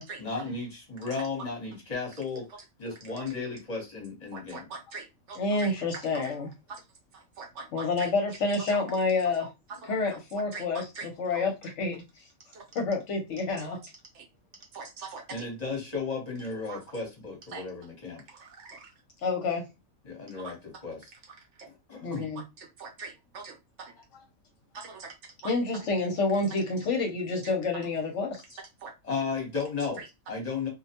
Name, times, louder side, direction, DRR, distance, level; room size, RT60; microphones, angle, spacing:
voice 1, 0.2-2.5 2.8-4.7 15.3-18.2 20.0-21.1 21.7-22.3 29.0-30.7, left 4 dB, 30° left, 1.0 m, -34 dB
voice 2, 4.3-5.7 6.1-6.3 6.7-6.8 7.4-8.1 8.7-8.8 9.4-9.5 9.8-9.9 10.5-10.6 11.0-11.1 12.5-12.6 14.1-14.2 14.7-15.4 16.7-16.8 17.5-17.6 18.3-18.9 20.3-20.5 22.8-23.5 24.7-25.1 25.4-25.5 28.8-28.9, right 4 dB, 60° right, 1.0 m, -42 dB
voice 3, 5.3-6.5 7.7-9.5 9.8-12.0 12.7-13.8 19.2-19.6 22.0-22.4 25.4-28.6, left 3 dB, 65° left, 0.9 m, -28 dB
2.5 x 2.1 x 2.8 m
omnidirectional pair, 1.5 m